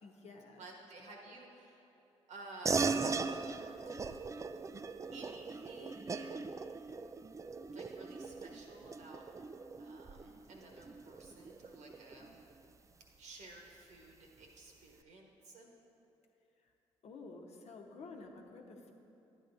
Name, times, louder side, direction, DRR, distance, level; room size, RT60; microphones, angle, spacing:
voice 1, 0.0-0.6 16.6-16.7 17.0-18.9, left 3 dB, 60° left, 1 dB, 1.0 m, -51 dB
voice 2, 0.6-1.8 2.3-4.0 5.1-6.3 7.7-9.2 9.8-12.3 13.2-15.7, right 2 dB, 70° right, 0 dB, 1.3 m, -53 dB
sound 1, 2.6-12.5, right 4 dB, 25° right, 0.3 m, -39 dB
11.0 x 8.6 x 2.7 m, 2.9 s
hypercardioid pair, 50°, 12 cm